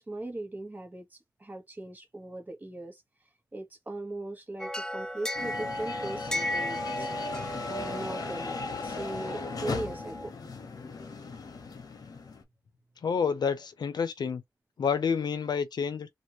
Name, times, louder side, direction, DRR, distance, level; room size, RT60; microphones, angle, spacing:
voice 1, 0.0-3.0 3.5-7.1 7.7-8.6 8.8-10.3, right 2 dB, 25° right, 1.1 m, -39 dB
sound 1, 4.6-10.3, left 1 dB, 10° left, 0.5 m, -35 dB
sound 2, 5.3-12.4, left 3 dB, 60° left, 0.9 m, -38 dB
voice 2, 13.0-14.4 14.8-16.1, left 6 dB, 80° left, 0.6 m, -29 dB
2.9 x 2.6 x 2.9 m
wide cardioid pair, 135°, 7 cm